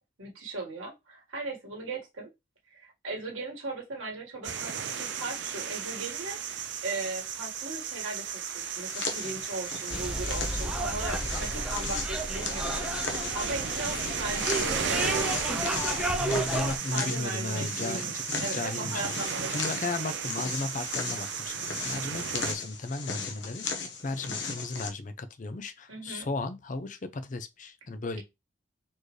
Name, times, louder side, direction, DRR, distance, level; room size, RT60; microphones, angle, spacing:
voice 1, 0.2-2.3 2.7-15.8 16.9-20.1 25.9-26.3, right 2 dB, 85° right, 1.7 m, -38 dB
sound 1, 4.4-22.5, right 7 dB, 65° right, 0.5 m, -35 dB
sound 2, 8.8-24.9, left 4 dB, 65° left, 1.0 m, -37 dB
sound 3, 9.9-16.8, right 1 dB, 5° right, 0.5 m, -32 dB
voice 2, 16.2-18.2 18.5-19.0 19.5-23.6 24.0-28.2, left 3 dB, 40° left, 0.5 m, -35 dB
4.4 x 3.1 x 3.1 m
head